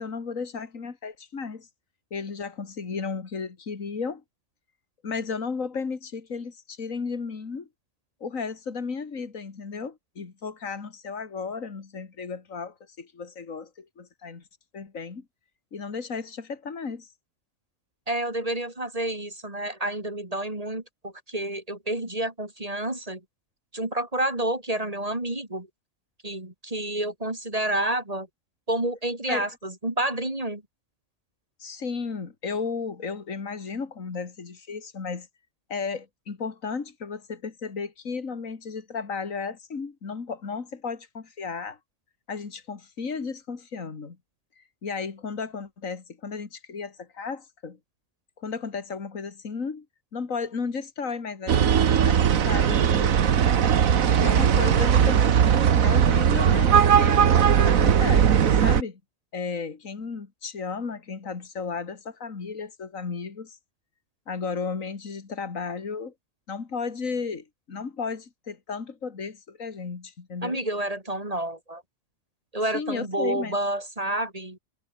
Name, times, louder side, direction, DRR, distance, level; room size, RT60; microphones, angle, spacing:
voice 1, 0.0-1.7 2.1-4.2 5.0-7.7 8.2-14.4 14.7-15.2 15.7-17.1 29.3-29.5 31.6-35.3 35.7-41.8 42.3-44.2 44.6-47.8 48.4-49.9 50.1-51.8 52.0-53.2 54.1-57.2 57.6-59.0 59.3-63.6 64.3-66.1 66.5-70.6 72.7-73.6, left 5 dB, 75° left, 2.6 m, -34 dB
voice 2, 18.1-23.2 23.7-25.7 26.2-28.3 28.7-30.6 70.4-71.8 72.5-74.6, right 1 dB, 25° right, 3.4 m, -29 dB
sound 1, 51.5-58.8, right 8 dB, 85° right, 1.6 m, -19 dB
omnidirectional pair, 1.4 m